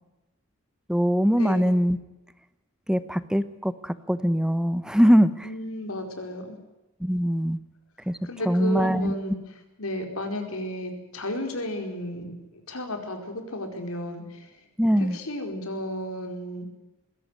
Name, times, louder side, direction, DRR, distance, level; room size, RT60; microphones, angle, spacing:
voice 1, 0.9-2.0 2.9-5.5 7.0-7.6 8.1-8.2 8.4-9.1 14.8-15.2, equal, 5° right, 14 dB, 0.9 m, -22 dB
voice 2, 5.4-6.6 8.2-9.4 9.8-14.5 15.1-16.7, left 1 dB, 90° left, 5 dB, 4.8 m, -33 dB
21.0 x 17.0 x 9.5 m, 0.98 s
head